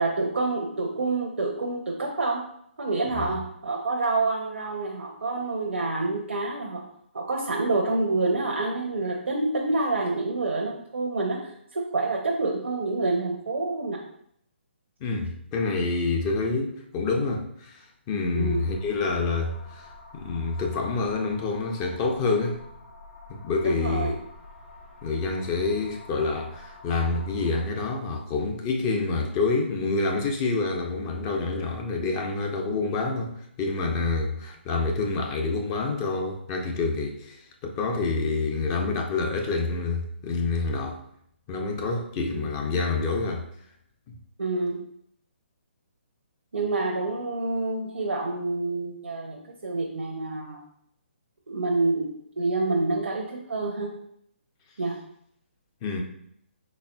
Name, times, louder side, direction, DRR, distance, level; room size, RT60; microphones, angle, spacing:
voice 1, 0.0-2.4 2.8-6.8 7.1-14.0 18.3-18.6 23.6-24.1 42.3-42.5 44.4-44.8 46.5-50.6 51.5-53.9 54.8-55.0, right 3 dB, 80° right, 0.6 m, -27 dB
voice 2, 15.0-22.6 23.3-24.2 25.0-41.0 41.5-43.4 55.8-56.0, left 3 dB, 25° left, 0.4 m, -27 dB
sound 1, 18.4-27.6, left 2 dB, 60° left, 1.4 m, -47 dB
4.0 x 3.5 x 2.2 m
hypercardioid pair, 150°, 7 cm